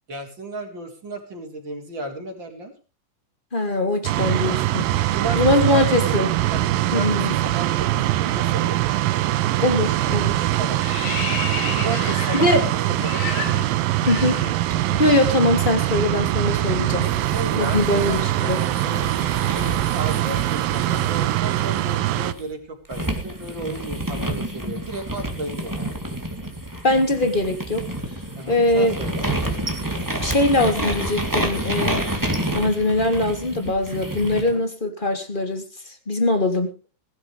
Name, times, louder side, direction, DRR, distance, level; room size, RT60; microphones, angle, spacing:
voice 1, 0.1-2.7 5.1-7.1 7.4-8.8 10.6-10.8 11.7-13.5 17.3-19.0 19.9-25.8 28.4-29.3 34.3-34.6, right 2 dB, 30° right, 2 dB, 5.2 m, -34 dB
voice 2, 3.5-4.8 5.3-6.3 6.9-7.4 9.6-10.5 12.3-12.6 14.1-14.4 15.0-17.1 17.6-18.6 26.8-27.8 28.5-28.9 30.2-32.0 32.5-36.7, left 1 dB, 15° left, 7 dB, 2.7 m, -21 dB
sound 1, 4.0-22.3, right 15 dB, 90° right, 2.7 m, -22 dB
sound 2, 9.5-9.8 10.1-15.1 15.3-15.5 15.8-19.9, left 6 dB, 65° left, 4.3 m, -33 dB
sound 3, 17.0-22.4 22.9-34.5, right 1 dB, 5° right, 2.9 m, -29 dB
21.0 x 13.0 x 3.4 m, 0.34 s
omnidirectional pair, 4.0 m